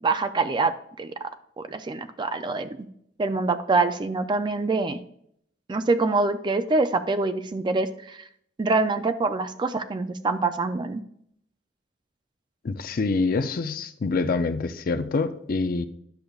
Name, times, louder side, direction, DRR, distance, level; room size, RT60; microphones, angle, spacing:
voice 1, 0.0-0.7 1.0-1.1 1.6-2.9 3.2-5.0 5.7-8.2 8.6-11.0, right 3 dB, 25° right, 10 dB, 0.3 m, -25 dB
voice 2, 12.6-15.9, left 3 dB, 50° left, 10 dB, 0.4 m, -26 dB
10.5 x 6.6 x 2.3 m, 0.70 s
head